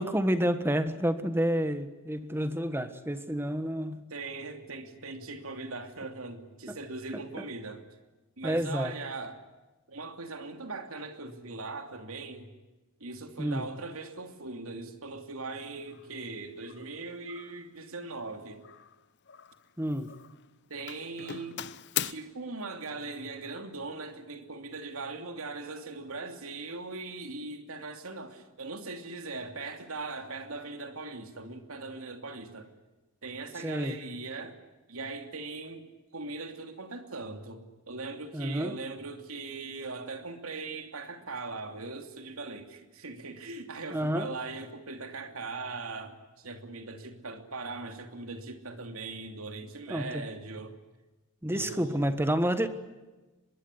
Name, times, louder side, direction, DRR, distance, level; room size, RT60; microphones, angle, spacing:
voice 1, 0.0-4.0 6.7-6.8 7.1-7.4 8.4-8.9 13.4-13.7 19.8-20.1 33.6-33.9 38.3-38.7 43.9-44.3 49.9-50.3 51.4-52.7, equal, 10° right, 11 dB, 1.4 m, -29 dB
voice 2, 4.1-7.8 8.4-9.4 9.9-12.5 13.0-18.7 20.7-21.6 22.0-32.7 33.2-34.6 34.9-50.7 51.5-52.1, right 3 dB, 70° right, 7 dB, 2.9 m, -40 dB
Doorbell, 15.9-16.1 16.6-17.0 17.3-17.7 18.6-19.7 20.0-20.5 20.9-22.1, left 11 dB, 50° left, 0.8 m, -38 dB
24.5 x 22.0 x 9.8 m, 1.1 s
head